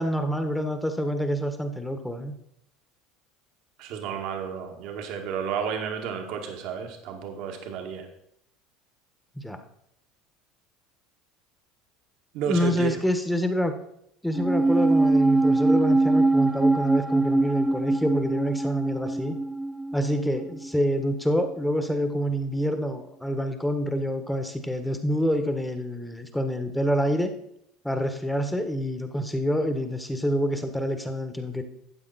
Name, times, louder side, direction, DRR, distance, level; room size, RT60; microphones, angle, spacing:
voice 1, 0.0-2.3 9.4-9.6 12.5-13.8 14.2-19.4 19.9-27.3 27.8-31.6, equal, 5° left, 7 dB, 1.6 m, -27 dB
voice 2, 3.8-8.1 12.3-13.0, right 7 dB, 65° right, 4 dB, 2.0 m, -31 dB
sound 1, 14.3-20.9 21.2-21.3, right 2 dB, 10° right, 0.8 m, -23 dB
12.5 x 8.4 x 4.3 m, 0.76 s
hypercardioid pair, 80°, 0 cm